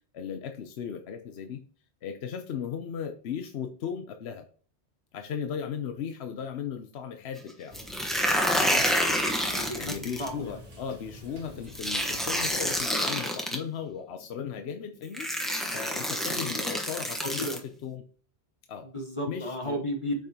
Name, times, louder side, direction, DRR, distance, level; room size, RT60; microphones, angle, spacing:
voice 1, 0.1-1.6 2.0-4.4 5.1-7.8 8.5-8.8 9.8-15.3 15.7-17.5 17.8-18.0 18.7-18.9 19.3-19.8, left 7 dB, 75° left, 6 dB, 1.0 m, -36 dB
sound 1, 7.7-10.3 11.8-13.6 14.6-14.7 15.1-17.6, equal, ahead, 1.1 m, -28 dB
sound 2, 7.7-12.9, equal, 35° right, 1.3 m, -48 dB
voice 2, 9.3-10.6 11.4-11.6 16.2-16.6 17.2-17.6 18.8-20.1, equal, 30° left, 2 dB, 1.1 m, -35 dB
8.5 x 5.9 x 2.9 m, 0.43 s
omnidirectional pair, 1.1 m